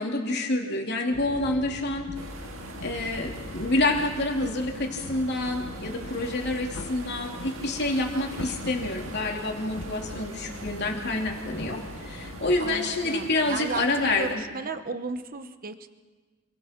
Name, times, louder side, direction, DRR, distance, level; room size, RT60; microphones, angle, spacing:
voice 1, 0.0-2.1 2.8-14.4, left 2 dB, 55° left, 1 dB, 3.0 m, -28 dB
sound 1, 1.1-12.8, left 2 dB, 80° left, 1.0 m, -41 dB
sound 2, 2.1-14.4, right 2 dB, 80° right, 1.9 m, -43 dB
voice 2, 12.6-15.9, right 3 dB, 45° right, 10 dB, 1.0 m, -35 dB
27.5 x 23.0 x 4.5 m, 1.3 s
head